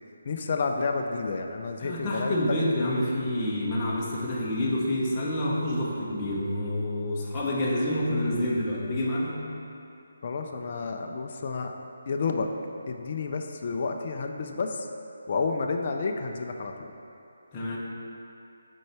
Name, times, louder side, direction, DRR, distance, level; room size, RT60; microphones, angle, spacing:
voice 1, 0.3-2.7 10.2-11.7 12.1-12.5 12.9-14.9 15.3-16.9, left 4 dB, 40° left, 3 dB, 0.4 m, -30 dB
voice 2, 1.8-9.3 17.5-17.8, left 1 dB, 20° left, -6 dB, 0.9 m, -28 dB
6.3 x 4.5 x 4.4 m, 2.7 s
hypercardioid pair, 170°, 0 cm